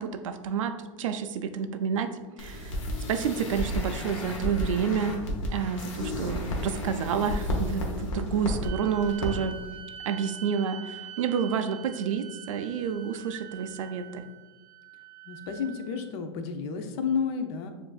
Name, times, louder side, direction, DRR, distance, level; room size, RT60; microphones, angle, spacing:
voice 1, 0.0-2.1 2.4-2.8 3.1-5.2 5.5-9.6 10.1-14.2, right 7 dB, 90° right, 9 dB, 0.4 m, -29 dB
sound 1, 2.4-8.7 9.0-9.3 9.6-9.7, left 1 dB, 85° left, 1.0 m, -32 dB
sound 2, 8.6-16.1, right 10 dB, 25° right, 0.5 m, -45 dB
voice 2, 15.2-17.7, left 6 dB, 55° left, 6 dB, 0.6 m, -31 dB
7.0 x 2.6 x 2.4 m, 1.2 s
supercardioid pair, 135°, 16 cm